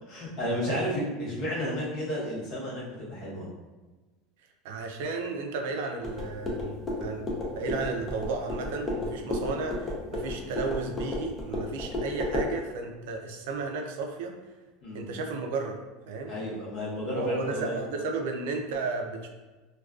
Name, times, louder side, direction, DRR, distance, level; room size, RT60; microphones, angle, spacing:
voice 1, 0.1-3.5 14.8-15.1 16.3-17.8, equal, 50° left, -6 dB, 0.9 m, -32 dB
voice 2, 4.6-6.7 7.0-14.3 14.9-15.8 16.1-16.3 17.1-19.3, right 3 dB, 80° right, 3 dB, 0.4 m, -33 dB
sound 1, 6.0-12.5, left 1 dB, 20° left, 0.5 m, -33 dB
2.4 x 2.2 x 2.3 m, 1.2 s
supercardioid pair, 155°, 0 cm